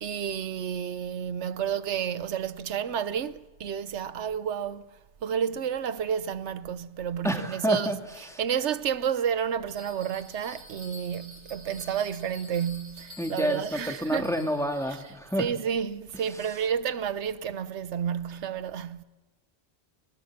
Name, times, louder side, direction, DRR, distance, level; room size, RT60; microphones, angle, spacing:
voice 1, 0.0-4.9 5.2-14.3 14.9-19.0, right 8 dB, 90° right, 1.1 m, -31 dB
voice 2, 7.2-8.4 13.2-15.5 16.4-16.5, equal, 5° left, 1.9 m, -29 dB
Bell, 9.8-15.3, equal, 70° right, 7.2 m, -48 dB
22.0 x 20.0 x 7.4 m
omnidirectional pair, 1.1 m